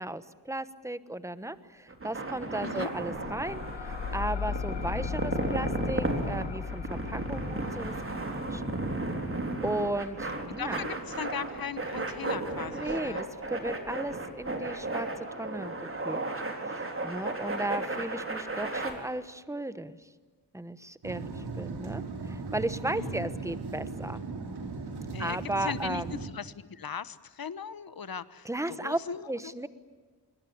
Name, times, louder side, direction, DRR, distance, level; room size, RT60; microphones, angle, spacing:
voice 1, 0.0-9.0 9.3-9.4 9.6-10.8 12.7-16.2 16.6-20.1 20.5-24.2 25.2-26.2 28.4-29.0 29.3-29.7, right 1 dB, 5° right, 13 dB, 1.1 m, -35 dB
sound 1, 1.9-18.9, right 2 dB, 30° right, 3.6 m, -34 dB
sound 2, 3.1-12.3, left 7 dB, 90° left, 1.0 m, -38 dB
voice 2, 10.6-13.2 23.0-23.3 25.1-29.5, left 7 dB, 60° left, 15 dB, 1.2 m, -39 dB
sound 3, 21.0-26.3, right 4 dB, 70° right, 3.3 m, -37 dB
26.0 x 23.0 x 8.7 m, 1.4 s
wide cardioid pair, 175°, 41 cm